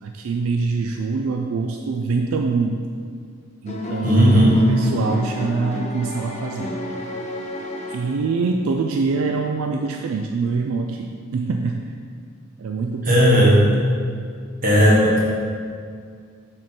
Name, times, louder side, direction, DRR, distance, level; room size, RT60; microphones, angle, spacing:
voice 1, 0.0-2.9 3.6-4.4 4.7-6.8 7.9-11.9 12.6-13.1, right 4 dB, 75° right, 3 dB, 0.3 m, -24 dB
sound 1, 3.7-8.5, left 1 dB, 30° left, 0.5 m, -31 dB
voice 2, 4.0-4.8 13.0-13.8 14.6-15.2, equal, 40° right, -5 dB, 1.4 m, -15 dB
6.2 x 4.3 x 4.4 m, 2.2 s
head